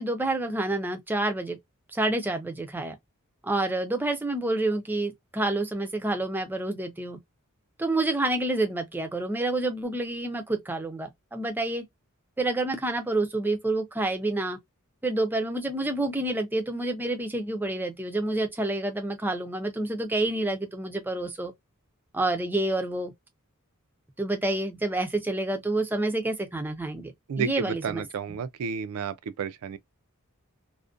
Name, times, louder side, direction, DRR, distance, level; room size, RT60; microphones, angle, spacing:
voice 1, 0.0-1.6 1.9-3.0 3.4-7.2 7.8-11.8 12.4-14.6 15.0-21.5 22.1-23.1 24.2-28.4, right 2 dB, 10° right, 0.4 m, -28 dB
voice 2, 27.3-29.8, right 6 dB, 75° right, 0.3 m, -31 dB
2.5 x 2.1 x 2.4 m
head